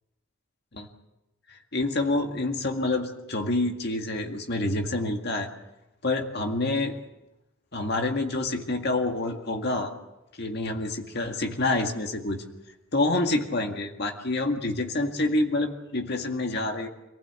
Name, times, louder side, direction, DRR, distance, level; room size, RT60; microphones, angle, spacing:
voice 1, 1.5-5.5 6.0-6.9 7.7-9.9 10.4-12.4 12.9-16.9, left 2 dB, 55° left, 3 dB, 2.0 m, -27 dB
26.5 x 15.5 x 8.2 m, 0.99 s
head